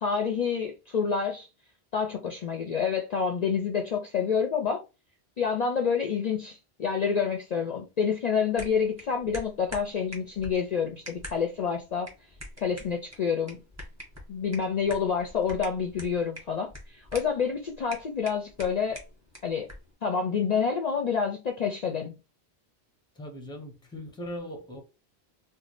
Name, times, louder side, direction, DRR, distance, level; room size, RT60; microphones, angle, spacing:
voice 1, 0.0-1.5 1.9-4.8 5.4-12.1 12.6-13.6 14.3-19.0 19.4-19.7 20.0-22.1, left 6 dB, 50° left, 0.5 m, -28 dB
sound 1, 8.5-19.9, left 1 dB, 15° right, 1.0 m, -46 dB
voice 2, 23.2-24.8, equal, 5° left, 0.6 m, -39 dB
3.1 x 2.1 x 3.9 m
omnidirectional pair, 1.1 m